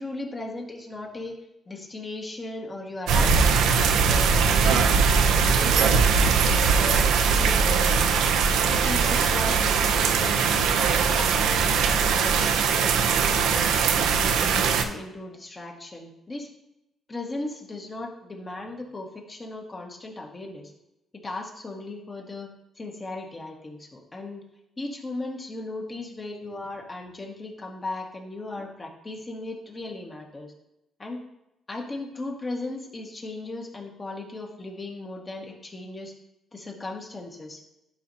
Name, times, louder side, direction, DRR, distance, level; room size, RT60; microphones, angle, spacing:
voice 1, 0.0-1.4 1.7-5.0 5.2-7.1 7.3-8.2 8.6-13.7 14.1-16.5 17.1-20.7 21.1-22.5 22.8-24.4 24.8-30.5 31.0-31.2 31.7-36.1 36.5-37.6, left 2 dB, 25° left, 0 dB, 1.8 m, -37 dB
sound 1, 3.1-14.8, right 5 dB, 85° right, 0.7 m, -21 dB
11.5 x 5.1 x 2.9 m, 0.89 s
cardioid pair, 90°, 0 cm